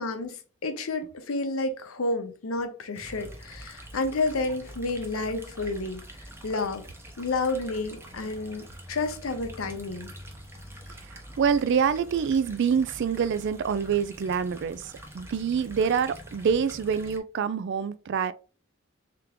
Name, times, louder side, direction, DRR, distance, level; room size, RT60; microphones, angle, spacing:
voice 1, 0.0-6.0 6.4-6.8 7.2-10.1, left 3 dB, 85° left, 0.7 m, -30 dB
sound 1, 2.9-17.2, right 1 dB, 10° right, 0.7 m, -45 dB
voice 2, 11.1-18.3, right 6 dB, 55° right, 0.3 m, -26 dB
3.6 x 3.5 x 2.9 m
head